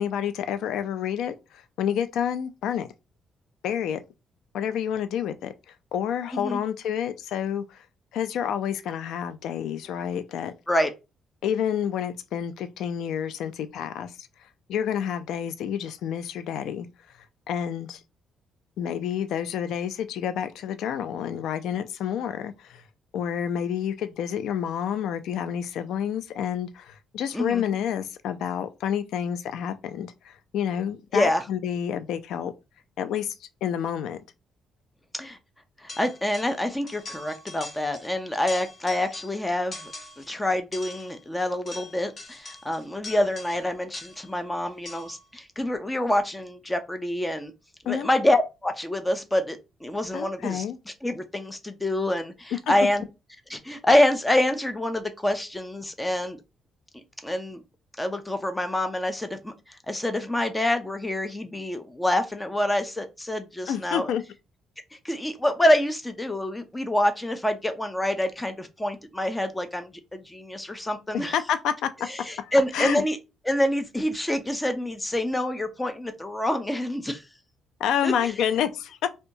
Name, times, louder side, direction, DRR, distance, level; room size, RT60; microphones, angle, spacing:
voice 1, 0.0-2.9 3.6-4.0 4.5-7.8 8.1-10.5 11.4-14.3 14.7-16.9 17.5-18.0 18.8-22.8 23.1-32.5 33.0-34.2 47.9-48.1 50.1-50.8 52.7-52.8 63.7-64.2 71.3-71.9 72.4-73.0 77.8-79.1, left 9 dB, 80° left, 0.3 m, -29 dB
voice 2, 31.1-31.4 35.1-35.4 35.8-47.5 47.8-53.0 53.5-56.4 57.2-57.6 58.0-64.1 65.0-71.4 72.1-73.2 73.5-77.2 78.0-78.3, left 1 dB, 10° left, 0.4 m, -26 dB
sound 1, 35.9-36.6 36.9-38.1 38.4-39.4 39.7-40.3 40.7-44.3 44.9-45.2, left 2 dB, 40° left, 1.0 m, -42 dB
2.7 x 2.2 x 2.6 m
cardioid pair, 90°, 0 cm